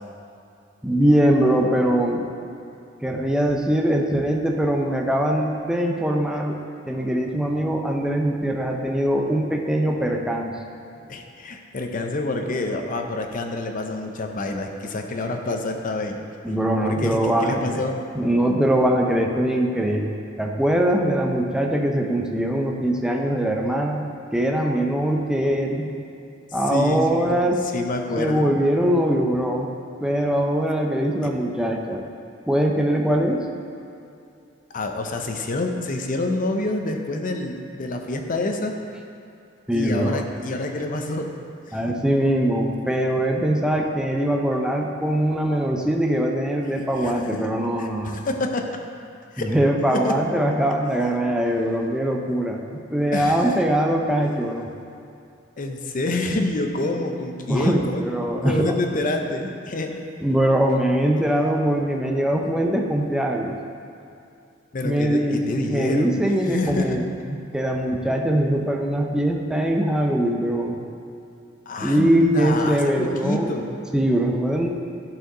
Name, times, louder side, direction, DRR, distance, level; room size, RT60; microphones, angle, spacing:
voice 1, 0.8-2.3 3.0-6.6 6.9-10.5 16.4-17.8 18.2-20.1 20.4-25.9 26.5-27.7 28.2-29.7 30.0-32.0 32.5-33.5 39.7-40.2 41.7-48.2 49.4-54.7 57.5-58.8 60.2-63.6 64.8-70.8 71.8-73.5 73.9-74.7, right 1 dB, 5° right, 1 dB, 0.5 m, -22 dB
voice 2, 11.1-16.2 16.8-18.0 26.7-28.5 34.7-38.7 39.7-41.3 41.7-42.0 47.0-47.4 47.8-48.6 49.3-49.5 49.9-50.1 53.1-53.5 55.6-58.0 58.4-59.9 64.7-67.0 71.7-73.8, left 2 dB, 45° left, 4 dB, 0.6 m, -27 dB
11.0 x 4.6 x 3.8 m, 2.6 s
head